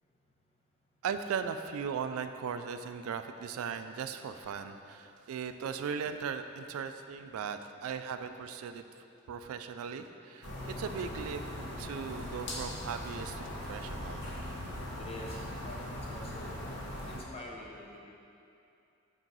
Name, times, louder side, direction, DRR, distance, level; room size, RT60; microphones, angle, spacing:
voice 1, 1.0-8.8 9.3-11.4 11.8-14.2, right 6 dB, 90° right, 8 dB, 0.3 m, -38 dB
sound 1, 10.4-17.2, left 1 dB, 55° left, 0.9 m, -40 dB
voice 2, 15.0-16.6 17.1-18.0, left 1 dB, 30° left, -2 dB, 0.7 m, -46 dB
6.0 x 5.4 x 3.9 m, 2.7 s
head